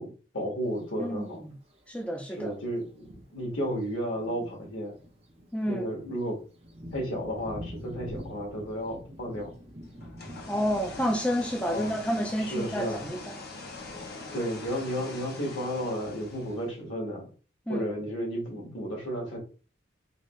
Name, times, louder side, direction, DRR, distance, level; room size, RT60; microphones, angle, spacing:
voice 1, 0.0-1.5 2.4-4.9 5.7-6.4 6.9-9.5 11.7-11.9 12.4-13.1 14.3-17.3 17.7-19.4, equal, 90° left, 1.7 m, -33 dB
Thunder, 0.6-0.8 1.7-1.8 2.4-2.5 2.9-16.6, equal, 35° right, 1.0 m, -48 dB
voice 2, 1.0-1.5 1.9-2.5 5.5-5.8 10.5-13.2 17.7-17.9, equal, 5° left, 0.5 m, -29 dB
sound 1, 10.0-16.8, left 3 dB, 55° left, 0.9 m, -43 dB
3.9 x 2.8 x 3.2 m
head